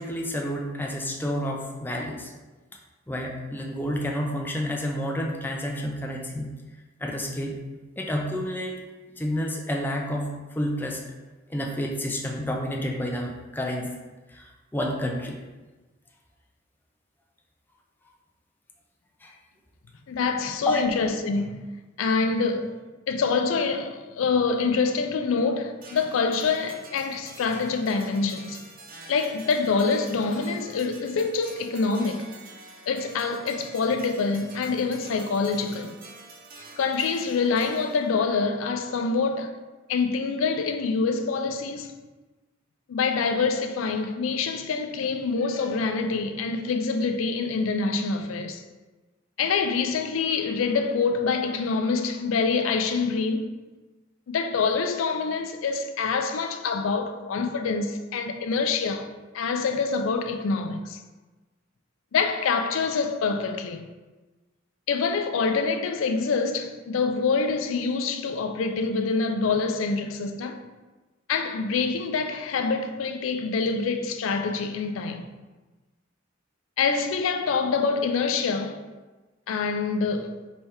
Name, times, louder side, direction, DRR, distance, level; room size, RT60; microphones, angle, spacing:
voice 1, 0.0-2.3 3.1-6.5 7.0-7.6 8.0-8.7 9.2-11.0 11.5-13.9 14.3-15.4 19.2-19.4 20.7-20.8, equal, 10° left, 0.5 m, -30 dB
voice 2, 20.1-21.7 22.0-22.7 23.1-28.6 29.1-32.4 32.9-36.0 36.8-39.5 39.9-41.9 42.9-48.6 49.4-53.4 54.3-59.1 59.3-61.0 62.1-63.9 64.9-70.6 71.3-75.3 76.8-78.8 79.5-80.4, left 4 dB, 90° left, 0.4 m, -26 dB
sound 1, 25.8-38.3, right 3 dB, 45° right, 0.7 m, -47 dB
3.3 x 3.3 x 4.3 m
head